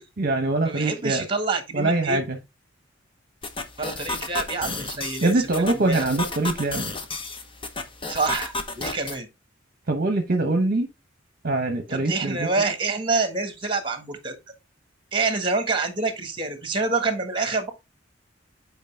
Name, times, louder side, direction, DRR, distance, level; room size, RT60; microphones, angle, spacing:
voice 1, 0.0-1.2 1.7-2.4 5.2-6.9 9.9-10.9 11.4-12.5, right 2 dB, 50° right, 0.9 m, -23 dB
voice 2, 0.6-2.2 3.8-6.1 8.0-9.3 11.9-14.3 15.1-17.7, right 3 dB, 25° right, 1.5 m, -27 dB
sound 1, 3.4-9.2, left 3 dB, 25° left, 0.9 m, -33 dB
8.1 x 4.7 x 3.4 m
head